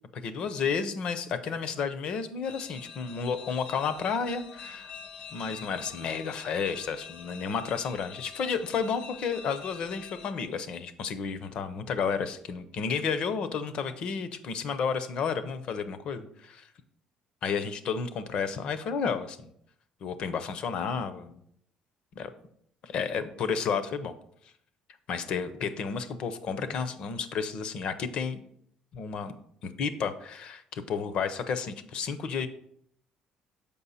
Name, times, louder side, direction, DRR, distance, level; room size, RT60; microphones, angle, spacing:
voice 1, 0.1-4.9 5.3-16.7 17.4-19.5 20.0-21.4 22.2-22.3 22.8-24.1 25.1-28.4 28.9-29.3 29.6-32.5, left 6 dB, 45° left, 12 dB, 0.6 m, -32 dB
sound 1, 2.4-10.3, left 6 dB, 70° left, 1.1 m, -46 dB
6.9 x 5.4 x 4.1 m, 0.68 s
cardioid pair, 170°, 2 cm